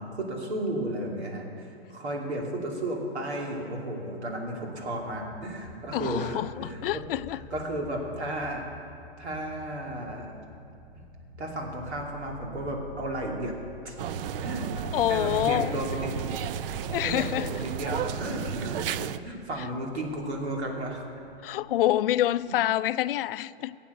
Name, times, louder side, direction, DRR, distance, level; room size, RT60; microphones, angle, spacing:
voice 1, 0.0-7.0 7.5-8.6 9.2-10.3 11.4-13.5 13.8-14.8 15.1-16.4 17.0-21.0 22.5-22.6, right 1 dB, 90° right, 2.9 m, -33 dB
sound 1, 4.8-22.0, left 2 dB, 35° right, 2.5 m, -48 dB
voice 2, 5.9-7.4 14.9-15.7 16.9-17.5 21.4-23.8, left 13 dB, 60° left, 0.4 m, -27 dB
sound 2, 14.0-19.2, right 9 dB, 60° right, 0.5 m, -33 dB
15.5 x 8.3 x 6.9 m
hypercardioid pair, 135°, 32 cm